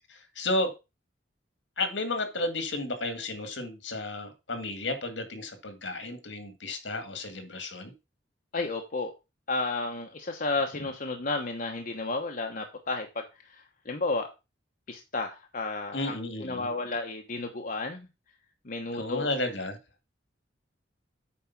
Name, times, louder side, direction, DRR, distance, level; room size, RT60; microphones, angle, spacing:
voice 1, 0.1-0.7 1.8-7.9 15.9-16.7 18.9-19.8, left 2 dB, 70° left, 2.0 m, -32 dB
voice 2, 8.5-9.1 9.5-14.3 14.9-18.1 18.6-19.3, left 3 dB, 45° left, 1.1 m, -32 dB
8.7 x 4.7 x 5.9 m
head